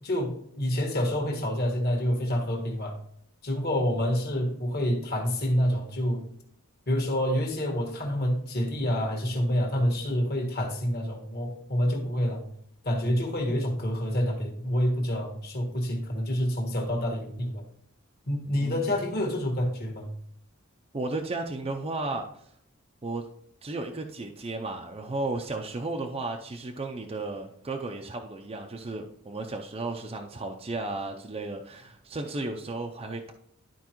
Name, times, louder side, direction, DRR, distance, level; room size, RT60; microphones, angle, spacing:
voice 1, 0.0-2.9 3.4-6.2 6.9-12.4 12.8-17.6 18.3-20.1, equal, 45° left, 1 dB, 1.6 m, -27 dB
voice 2, 18.5-18.8 20.9-22.3 23.0-23.3 23.6-33.3, right 2 dB, 25° right, 2 dB, 0.5 m, -34 dB
12.0 x 4.6 x 3.0 m, 0.68 s
head